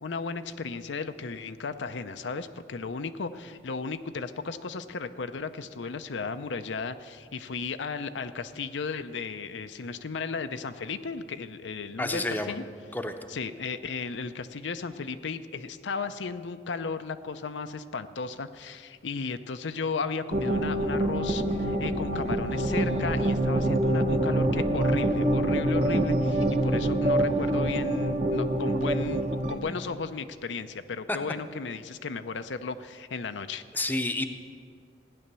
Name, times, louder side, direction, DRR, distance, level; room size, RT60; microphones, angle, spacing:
voice 1, 0.0-12.6 13.3-33.6, left 4 dB, 85° left, 10 dB, 0.6 m, -35 dB
voice 2, 12.0-12.5 12.9-13.2 31.1-31.2 33.7-34.3, left 2 dB, 10° left, 6 dB, 0.6 m, -29 dB
sound 1, 20.3-29.6, right 1 dB, 35° right, 0.8 m, -25 dB
15.5 x 10.0 x 6.8 m, 2.2 s
head